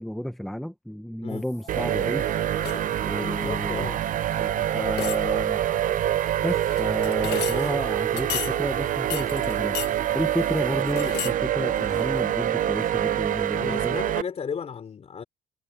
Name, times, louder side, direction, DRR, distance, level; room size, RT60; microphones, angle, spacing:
voice 1, 0.0-2.4 3.0-3.9 4.4-5.6 6.4-9.8 10.1-14.0, equal, ahead, 1.0 m, -31 dB
sound 1, 1.3-10.8, left 4 dB, 20° left, 1.9 m, -45 dB
sound 2, 1.7-14.2, right 11 dB, 50° right, 0.6 m, -26 dB
sound 3, 2.6-3.0 4.4-4.5 4.9-5.5 6.5-7.7 8.2-8.6 9.1-9.9 10.4-11.4 11.7-12.4 12.8-12.9, left 15 dB, 80° left, 1.1 m, -34 dB
voice 2, 3.1-4.1 13.6-15.2, left 6 dB, 40° left, 3.6 m, -34 dB
cardioid pair, 110°, 17 cm